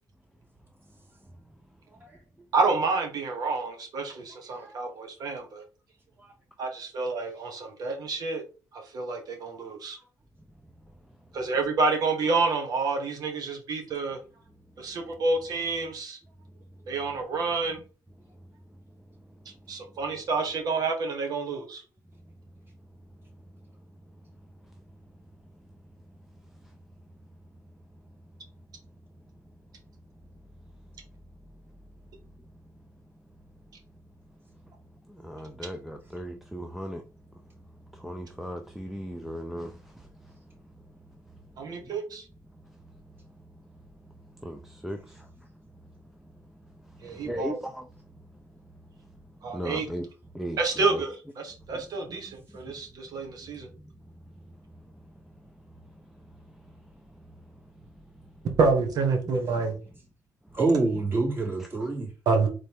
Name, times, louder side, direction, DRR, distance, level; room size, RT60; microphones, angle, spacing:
voice 1, 2.5-5.6 6.6-8.4 8.7-10.0 11.3-14.2 14.8-16.2 16.9-17.8 19.7-21.8 41.6-42.2 47.0-47.6 49.4-49.8 50.6-53.7 58.6-59.8 62.3-62.5, right 4 dB, 65° right, 1.3 m, -28 dB
voice 2, 35.0-37.0 37.5-41.8 42.6-45.7 46.2-48.4 48.9-50.1 50.3-51.0 51.7-52.4 53.4-53.5 53.8-54.1 54.5-58.3, equal, 5° right, 0.5 m, -41 dB
voice 3, 60.5-62.1, right 3 dB, 30° right, 2.5 m, -27 dB
3.9 x 3.3 x 3.5 m
cardioid pair, 100°, 7 cm